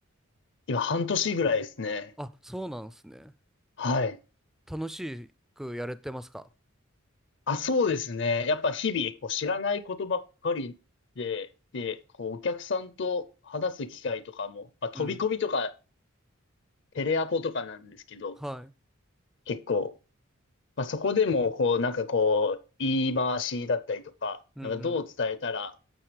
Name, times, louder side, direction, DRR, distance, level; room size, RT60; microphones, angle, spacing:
voice 1, 0.7-2.1 3.8-4.2 7.5-10.7 11.2-11.5 11.7-15.7 16.9-18.4 19.5-19.9 20.8-25.7, left 4 dB, 60° left, 0.6 m, -29 dB
voice 2, 2.2-3.3 4.7-5.3 5.6-6.5 14.9-15.2 18.4-18.7 24.6-25.0, equal, ahead, 0.3 m, -38 dB
9.0 x 7.0 x 3.3 m
head